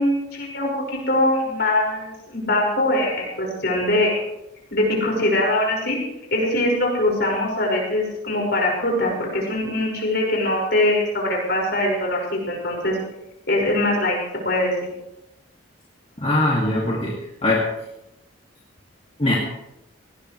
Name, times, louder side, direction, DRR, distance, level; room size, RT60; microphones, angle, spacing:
voice 1, 0.0-4.2 4.7-6.0 6.3-13.0 13.5-14.2 14.4-14.7, left 1 dB, 55° left, -1 dB, 5.7 m, -22 dB
voice 2, 16.2-17.1 17.4-17.6 19.2-19.4, left 1 dB, 30° left, -4 dB, 2.3 m, -20 dB
19.5 x 17.5 x 3.3 m, 0.91 s
head